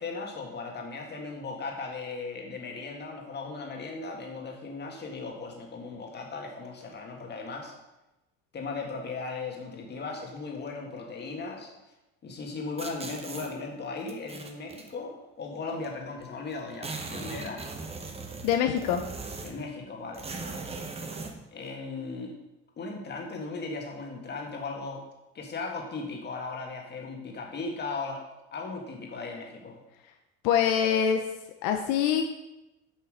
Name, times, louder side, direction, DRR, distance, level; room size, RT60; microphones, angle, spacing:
voice 1, 0.0-7.8 8.5-11.7 12.2-17.7 19.4-20.9 21.5-22.3 22.8-25.0 25.4-28.2 28.5-29.8, left 3 dB, 35° left, 1 dB, 1.8 m, -37 dB
sound 1, 12.8-13.5 14.1-14.9 15.8-15.9 16.2-16.3 16.5-19.7 20.1-21.4, right 4 dB, 20° right, 1.0 m, -39 dB
voice 2, 18.4-19.0 30.4-31.2 31.6-32.2, left 8 dB, 80° left, 5 dB, 0.8 m, -24 dB
7.6 x 5.6 x 5.0 m, 0.96 s
cardioid pair, 120°, 31 cm